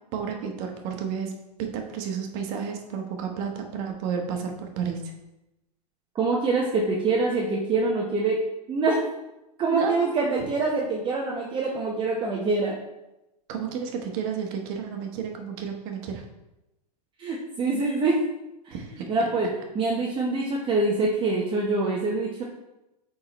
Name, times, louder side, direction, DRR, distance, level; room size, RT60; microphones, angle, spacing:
voice 1, 0.1-1.3 1.6-5.1 9.7-10.0 13.5-16.2 18.7-19.3, right 6 dB, 50° right, 3 dB, 1.1 m, -31 dB
voice 2, 6.1-8.4 8.7-9.0 9.6-12.7 17.2-18.2 18.6-18.7 19.1-19.5 19.7-22.4, right 3 dB, 25° right, -3 dB, 0.9 m, -25 dB
8.4 x 3.7 x 3.1 m, 0.94 s
hypercardioid pair, 125°, 21 cm